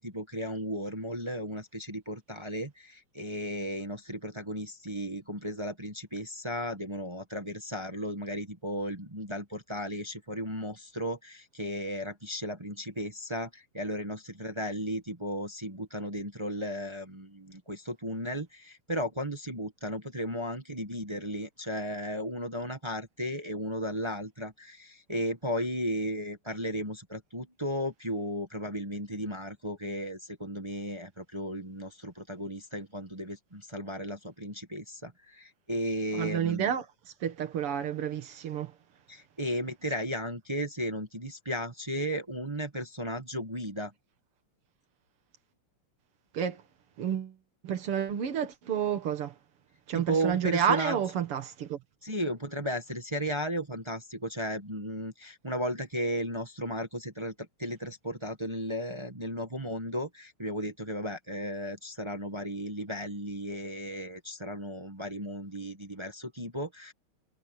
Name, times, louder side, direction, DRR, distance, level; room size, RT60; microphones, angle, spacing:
voice 1, 0.0-36.7 39.1-43.9 49.9-51.0 52.0-66.9, equal, 15° right, 1.1 m, -35 dB
voice 2, 36.1-36.9 37.2-38.7 46.3-46.6 47.0-47.3 47.6-49.3 49.9-51.8, right 8 dB, 85° right, 2.5 m, -30 dB
omnidirectional pair, 2.4 m